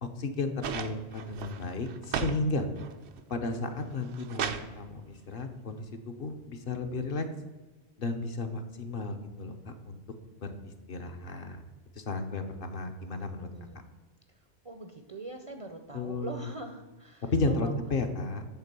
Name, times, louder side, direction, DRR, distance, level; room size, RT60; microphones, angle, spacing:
voice 1, 0.0-2.7 3.3-7.2 8.0-9.5 9.9-10.0 10.4-10.5 10.9-11.6 12.0-13.5 15.9-16.4 17.3-18.4, left 3 dB, 60° left, 5 dB, 0.9 m, -33 dB
sound 1, 0.6-2.4 2.8-3.3 3.8-4.7 5.9-6.0, right 7 dB, 85° right, 0.9 m, -35 dB
voice 2, 14.6-18.0, right 2 dB, 40° right, 6 dB, 0.5 m, -43 dB
8.2 x 3.7 x 6.6 m, 1.2 s
omnidirectional pair, 1.1 m